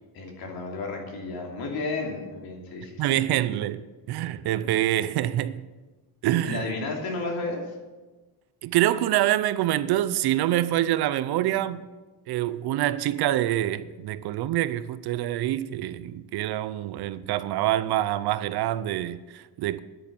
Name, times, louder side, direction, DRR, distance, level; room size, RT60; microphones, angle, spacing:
voice 1, 0.1-3.2 6.4-7.6, left 3 dB, 65° left, 3.0 m, -32 dB
voice 2, 3.0-5.6 6.2-6.6 8.6-11.8 12.3-19.8, right 13 dB, 70° right, 0.6 m, -26 dB
10.0 x 9.0 x 6.9 m
cardioid pair, 160°, 40 cm